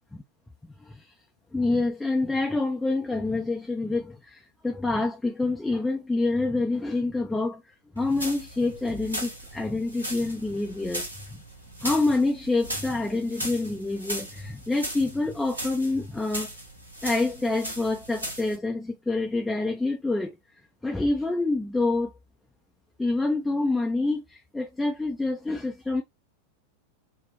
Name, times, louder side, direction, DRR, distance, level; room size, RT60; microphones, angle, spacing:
voice 1, 0.8-1.1 1.5-7.6 7.9-11.4 11.8-16.5 17.0-20.4 20.8-22.1 23.0-26.0, left 2 dB, 5° left, 0.5 m, -27 dB
sound 1, 8.0-18.6, right 1 dB, 80° right, 1.1 m, -37 dB
4.2 x 2.2 x 2.7 m
figure-of-eight pair, 90°, 0 cm